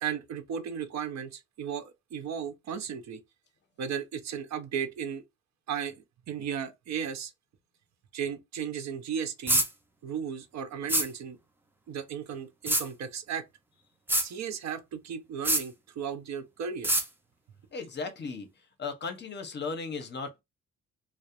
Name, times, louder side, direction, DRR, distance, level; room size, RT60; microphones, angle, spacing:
voice 1, 0.0-3.2 3.8-5.2 5.7-5.9 6.3-7.3 8.1-9.6 10.0-11.4 11.9-13.5 14.2-16.9, right 7 dB, 65° right, 0.5 m, -35 dB
sound 1, 9.5-9.7 10.9-11.1 12.7-12.8 14.1-14.3 15.4-15.6 16.8-17.0, right 1 dB, 5° right, 0.4 m, -24 dB
voice 2, 17.7-18.5 18.8-20.4, left 4 dB, 35° left, 0.6 m, -36 dB
2.3 x 2.0 x 2.7 m
cardioid pair, 110°, 30 cm